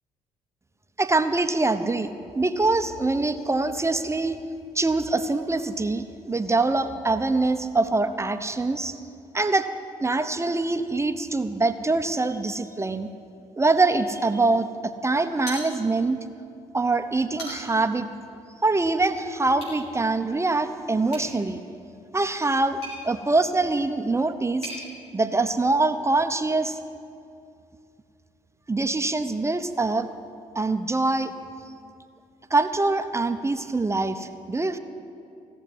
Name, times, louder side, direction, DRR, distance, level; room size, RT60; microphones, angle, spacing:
voice 1, 1.0-4.4 4.7-8.9 9.3-9.7 10.0-13.1 13.6-14.7 15.0-16.2 16.7-18.1 18.6-21.6 22.1-22.8 23.0-24.7 25.1-26.8 28.7-30.1 30.5-31.3 32.5-34.8, right 3 dB, 20° right, 9 dB, 0.9 m, -24 dB
sound 1, 15.4-16.2 16.6-16.7 17.2-17.9 19.5-19.8 21.1-24.8, equal, 90° left, 4.4 m, -41 dB
17.0 x 7.3 x 9.5 m, 2.5 s
hypercardioid pair, 50°, 14 cm